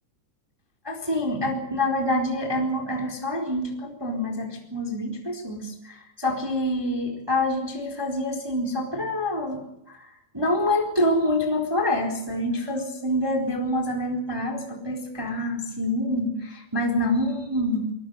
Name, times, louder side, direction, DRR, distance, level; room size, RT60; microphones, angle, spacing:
voice 1, 0.8-17.9, left 1 dB, 5° right, 2 dB, 3.1 m, -26 dB
23.5 x 21.5 x 6.5 m, 0.80 s
omnidirectional pair, 5.5 m